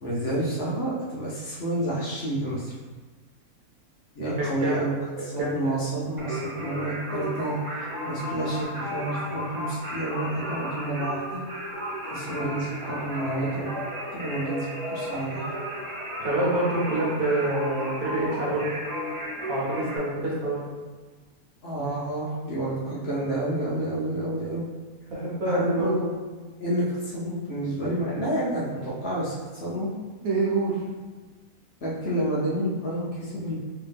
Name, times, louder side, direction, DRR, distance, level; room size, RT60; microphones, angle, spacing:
voice 1, 0.0-2.7 4.2-4.9 5.2-11.4 12.1-13.7 14.1-15.5 21.6-24.6 25.4-26.1 26.6-29.9 31.8-33.5, right 1 dB, 55° left, -7 dB, 0.9 m, -29 dB
voice 2, 4.2-4.8 5.2-5.7 16.0-18.7 19.5-20.6 25.1-25.9 30.2-30.8, right 2 dB, 75° right, -5 dB, 1.4 m, -27 dB
Singing, 6.2-20.0, equal, 55° right, 0.3 m, -34 dB
3.2 x 2.7 x 3.4 m, 1.3 s
omnidirectional pair, 1.5 m